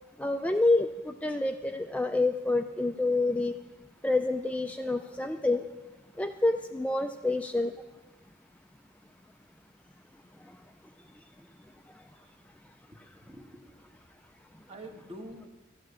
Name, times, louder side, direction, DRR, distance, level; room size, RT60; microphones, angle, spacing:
voice 1, 0.2-3.5 4.0-5.7 6.1-7.7 10.3-10.7 11.1-11.2 11.9-12.2 13.0-13.1 14.5-14.6, left 2 dB, 10° left, 5 dB, 0.4 m, -28 dB
voice 2, 11.2-11.5 12.2-12.3 13.2-14.1 14.7-15.5, right 1 dB, 35° right, 3 dB, 1.4 m, -47 dB
13.0 x 9.1 x 6.9 m, 1.2 s
head